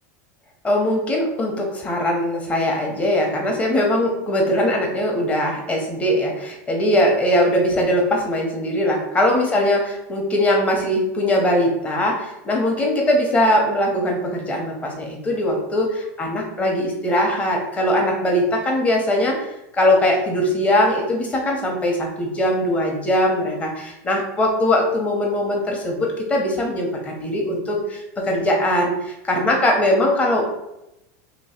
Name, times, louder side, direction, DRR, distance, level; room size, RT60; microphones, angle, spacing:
voice 1, 0.6-19.5 19.8-30.4, left 1 dB, 15° left, 0 dB, 0.8 m, -21 dB
3.1 x 3.0 x 4.3 m, 0.90 s
supercardioid pair, 150°, 9 cm